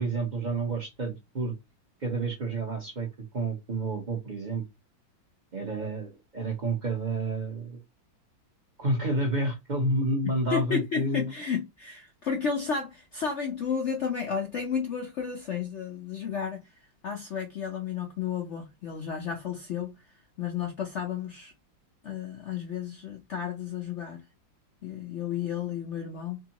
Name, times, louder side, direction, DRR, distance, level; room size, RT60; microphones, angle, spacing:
voice 1, 0.0-1.5 2.0-4.6 5.5-7.8 8.8-11.3, right 2 dB, 40° right, 0.6 m, -30 dB
voice 2, 10.5-16.6 17.0-19.9 20.4-21.5 22.0-24.2 24.8-26.4, left 7 dB, 75° left, 0.6 m, -32 dB
3.6 x 3.4 x 2.9 m
omnidirectional pair, 2.1 m